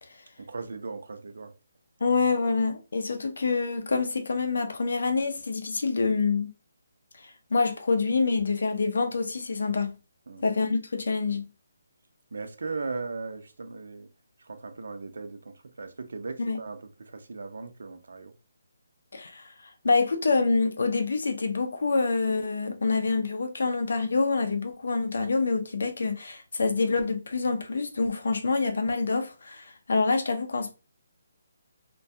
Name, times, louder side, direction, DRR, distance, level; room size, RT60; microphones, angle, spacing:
voice 1, 0.4-1.5 10.3-10.4 12.3-14.1 14.4-18.3, right 4 dB, 75° right, 0.5 m, -38 dB
voice 2, 2.0-6.5 7.2-9.9 10.4-11.5 16.4-16.6 19.1-19.5 19.8-30.7, left 4 dB, 70° left, 0.5 m, -26 dB
2.2 x 2.2 x 2.6 m
hypercardioid pair, 170°, 0 cm